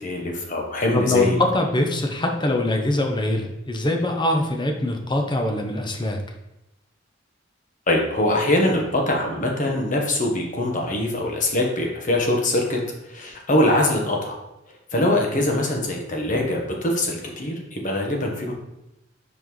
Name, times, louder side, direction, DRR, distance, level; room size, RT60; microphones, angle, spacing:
voice 1, 0.0-1.4 7.9-14.4 14.9-18.5, left 1 dB, 45° left, 0 dB, 1.1 m, -23 dB
voice 2, 0.9-6.2, left 1 dB, 25° left, 3 dB, 0.7 m, -23 dB
5.7 x 5.2 x 3.2 m, 0.91 s
head